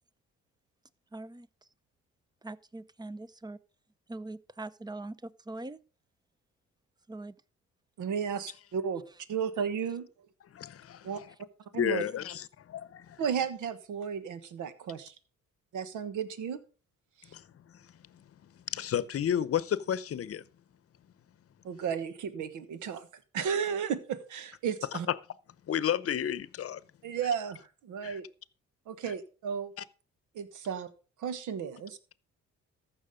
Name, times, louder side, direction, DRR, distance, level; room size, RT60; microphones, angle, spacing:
voice 1, 1.1-1.5 2.4-3.6 4.1-5.8 7.1-7.4, right 2 dB, 15° right, 0.6 m, -42 dB
voice 2, 8.0-9.0 9.3-10.1 11.0-11.2 11.7-12.0 13.2-15.1 15.7-16.6 17.2-17.3 21.6-23.1 23.3-25.1 27.0-28.2 28.9-29.7 30.3-30.9 31.2-32.0, right 7 dB, 80° right, 1.3 m, -34 dB
voice 3, 10.5-11.2 11.8-13.2 17.3-17.4 18.1-20.5 25.7-26.8 28.0-28.2, left 9 dB, 50° left, 0.8 m, -32 dB
14.0 x 6.2 x 5.1 m
cardioid pair, 90°, 30 cm